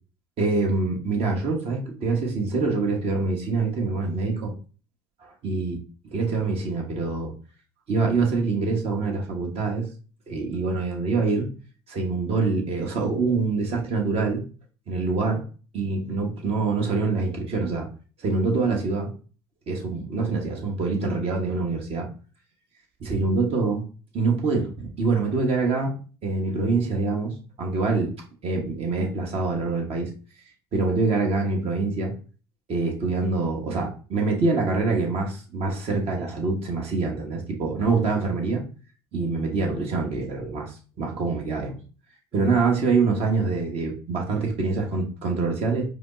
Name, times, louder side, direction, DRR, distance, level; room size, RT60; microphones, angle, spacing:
voice 1, 0.4-4.5 5.2-5.7 6.1-7.3 7.9-9.9 10.3-11.5 11.9-14.4 14.9-15.4 15.7-17.9 18.2-19.1 19.7-22.1 23.0-23.8 24.1-25.9 26.2-28.1 28.4-30.1 30.7-32.1 32.7-38.6 39.1-41.8 42.3-45.8, right 3 dB, 50° right, 0 dB, 1.1 m, -25 dB
4.8 x 2.0 x 2.6 m, 0.37 s
hypercardioid pair, 75°, 13 cm